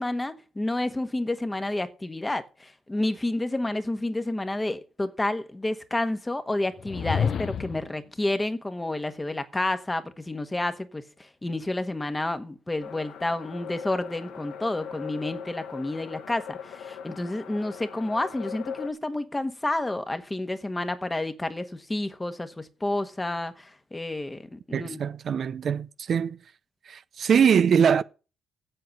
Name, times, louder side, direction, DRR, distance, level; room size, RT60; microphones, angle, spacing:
voice 1, 0.0-25.0, left 2 dB, 15° left, 1.3 m, -30 dB
sound 1, 6.8-8.0, left 7 dB, 55° left, 0.4 m, -28 dB
sound 2, 12.8-18.9, left 7 dB, 80° left, 1.4 m, -40 dB
voice 2, 24.7-26.4 26.9-28.0, right 7 dB, 55° right, 0.5 m, -22 dB
7.8 x 7.7 x 7.2 m
cardioid pair, 90°, 0 cm